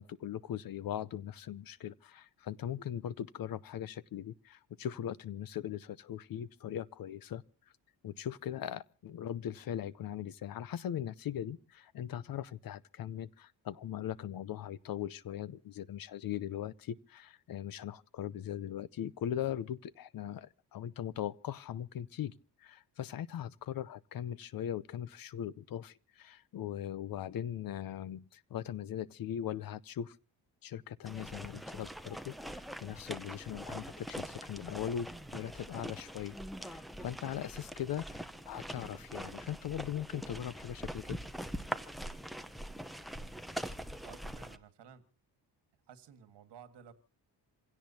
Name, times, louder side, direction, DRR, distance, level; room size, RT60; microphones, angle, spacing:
voice 1, 0.0-7.4 8.0-30.2 30.6-41.2, left 10 dB, 55° left, 0.7 m, -40 dB
sound 1, 31.0-44.6, equal, ahead, 0.7 m, -43 dB
voice 2, 44.0-45.1 45.9-46.9, right 7 dB, 75° right, 1.9 m, -54 dB
27.5 x 17.0 x 2.8 m
cardioid pair, 145°, 42 cm